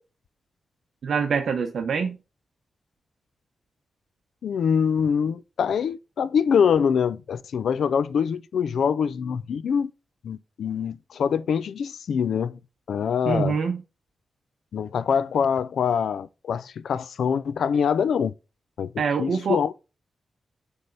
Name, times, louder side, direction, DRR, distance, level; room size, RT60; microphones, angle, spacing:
voice 1, 1.0-2.2 13.3-13.8 19.0-19.6, right 5 dB, 75° right, 0.8 m, -25 dB
voice 2, 4.4-9.9 10.2-12.6 12.9-13.6 14.7-18.3 18.8-18.9 19.2-19.7, left 7 dB, 85° left, 0.4 m, -24 dB
8.6 x 3.4 x 3.9 m
wide cardioid pair, 100°, 0 cm